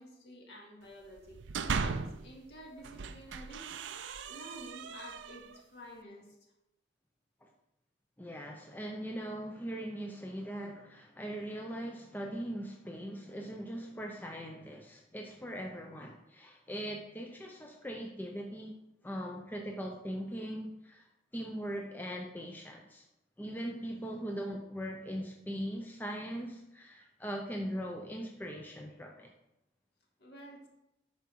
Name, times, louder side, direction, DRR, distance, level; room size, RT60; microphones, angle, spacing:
voice 1, 0.0-3.7 4.2-6.4 30.2-30.7, equal, 55° left, -1 dB, 2.2 m, -50 dB
sound 1, 1.2-2.3 2.8-5.6, right 5 dB, 75° right, 0.5 m, -38 dB
voice 2, 8.2-18.7 19.0-23.0 23.4-29.3, equal, 10° left, 1 dB, 0.6 m, -40 dB
8.7 x 6.1 x 4.6 m, 0.88 s
head